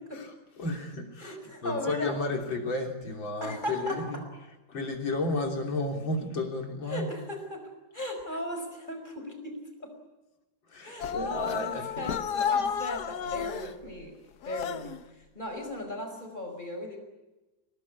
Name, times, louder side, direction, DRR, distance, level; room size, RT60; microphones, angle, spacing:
voice 1, 0.1-4.3 4.7-7.2 10.7-12.3, left 2 dB, 90° left, 3 dB, 4.0 m, -33 dB
voice 2, 1.2-2.2 3.4-4.2 6.9-9.9 10.8-14.2 14.4-17.0, left 1 dB, 25° left, 5 dB, 5.4 m, -37 dB
sound 1, 11.0-13.7 14.4-15.0, left 7 dB, 60° left, 1.5 m, -31 dB
24.0 x 19.0 x 9.7 m, 1.1 s
omnidirectional pair, 2.1 m